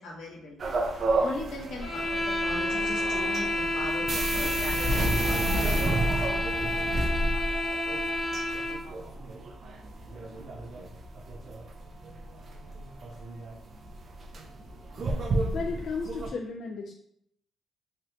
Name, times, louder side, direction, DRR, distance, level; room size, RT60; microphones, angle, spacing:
voice 1, 0.0-5.7, left 2 dB, 85° left, -3 dB, 1.2 m, -40 dB
sound 1, 0.6-16.3, right 2 dB, 50° right, 0.4 m, -31 dB
sound 2, 1.8-8.9, left 1 dB, 20° left, 0.7 m, -30 dB
voice 2, 15.5-16.9, left 4 dB, 55° left, 1 dB, 0.3 m, -34 dB
3.2 x 2.7 x 2.7 m, 0.70 s
cardioid pair, 90°, 0 cm